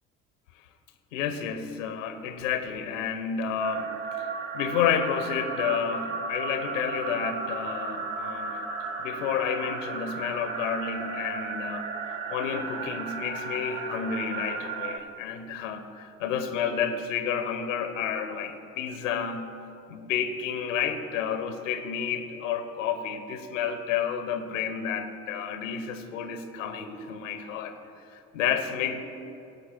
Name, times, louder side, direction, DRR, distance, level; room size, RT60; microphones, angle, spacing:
voice 1, 1.1-8.6 9.0-19.4 19.9-27.7 28.1-29.0, left 7 dB, 70° left, 8 dB, 0.9 m, -30 dB
sound 1, 3.6-15.0, right 4 dB, 60° right, 1.2 m, -34 dB
17.5 x 6.0 x 5.9 m, 2.7 s
figure-of-eight pair, 55°, 39 cm